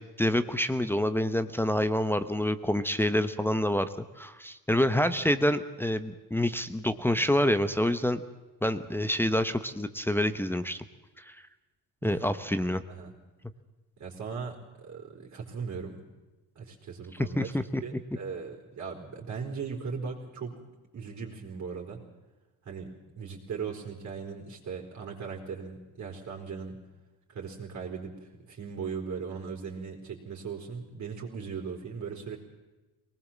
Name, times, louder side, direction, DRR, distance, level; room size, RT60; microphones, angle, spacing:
voice 1, 0.0-8.2 8.6-10.8 11.2-11.4 12.0-12.8 17.4-17.8, left 1 dB, 5° left, 9 dB, 0.8 m, -27 dB
voice 2, 12.0-12.5 12.9-13.1 14.0-16.0 16.6-17.5 17.8-20.5 20.9-22.0 22.6-26.8 27.3-32.4, right 5 dB, 45° right, 0 dB, 4.1 m, -38 dB
23.0 x 19.5 x 7.3 m, 1.1 s
cardioid pair, 130°, 37 cm